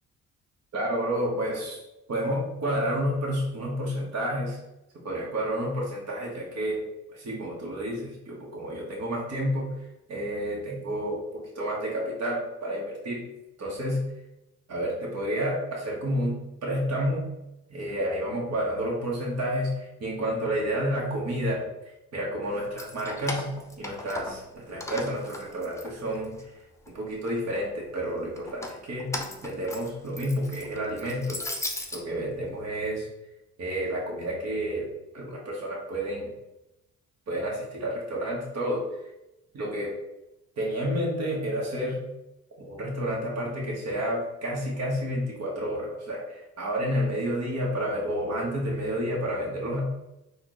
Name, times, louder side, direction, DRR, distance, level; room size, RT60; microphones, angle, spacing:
voice 1, 0.7-1.8 2.1-4.6 5.0-6.8 7.1-9.7 10.1-13.2 13.6-14.0 14.7-17.2 17.7-21.7 22.1-23.4 23.8-26.3 26.9-29.1 29.4-31.4 31.9-33.1 33.6-34.9 35.1-36.3 37.3-38.9 39.5-39.9 40.6-42.0 42.6-49.8, equal, 55° right, -3 dB, 1.5 m, -30 dB
Keys jangling, 22.6-24.5 24.8-26.4 26.8-27.6 28.4-32.0, left 2 dB, 10° left, 0.7 m, -37 dB
4.4 x 2.6 x 3.9 m, 0.92 s
cardioid pair, 90°, 30 cm